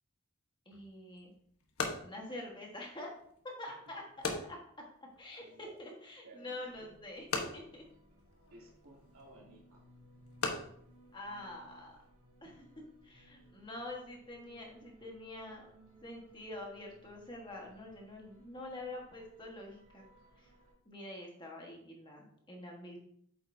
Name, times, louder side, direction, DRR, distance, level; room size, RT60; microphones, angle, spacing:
voice 1, 0.6-1.3 2.0-3.1 3.6-4.0 4.5-4.6 5.2-7.8 11.1-11.9 12.4-12.6 13.0-15.7 16.0-20.0 20.4-20.5 20.8-23.0, left 1 dB, 20° left, -1 dB, 1.4 m, -46 dB
sound 1, 0.7-12.1, left 4 dB, 85° left, 1.2 m, -43 dB
voice 2, 6.2-6.9 8.5-9.9, right 2 dB, 80° right, -3 dB, 2.9 m, -57 dB
sound 2, 6.6-20.7, right 1 dB, 35° right, 2.5 m, -62 dB
8.3 x 7.4 x 2.7 m, 0.66 s
head